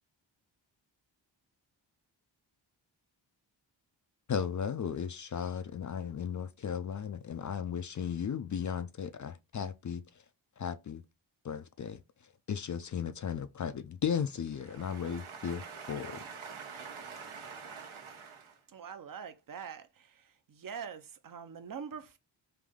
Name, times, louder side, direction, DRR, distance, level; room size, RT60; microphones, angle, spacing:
voice 1, 4.3-10.0 10.6-11.0 11.5-12.0 12.5-15.6 15.9-16.2, left 7 dB, 40° left, 0.4 m, -35 dB
voice 2, 14.7-18.5, right 5 dB, 80° right, 1.1 m, -45 dB
voice 3, 18.7-22.2, right 7 dB, 45° right, 0.7 m, -44 dB
3.4 x 2.6 x 3.5 m
cardioid pair, 55°, 48 cm